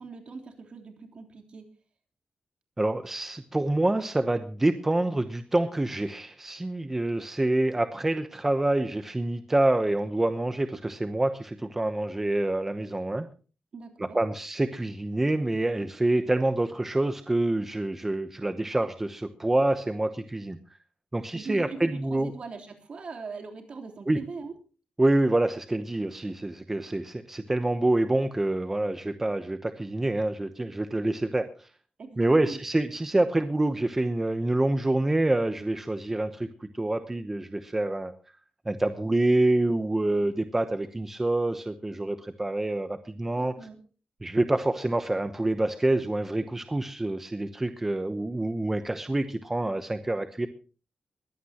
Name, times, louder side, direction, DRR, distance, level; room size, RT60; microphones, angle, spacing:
voice 1, 0.0-1.7 13.7-14.2 21.3-24.5 32.0-32.6 43.2-43.8, right 4 dB, 50° right, 2 dB, 3.5 m, -40 dB
voice 2, 2.8-13.3 14.0-20.6 21.1-22.3 24.1-24.2 25.0-31.7 32.2-38.1 38.7-43.7 44.2-50.5, right 2 dB, 15° right, 8 dB, 0.9 m, -27 dB
21.0 x 16.0 x 2.9 m, 0.36 s
wide cardioid pair, 175°, 2 cm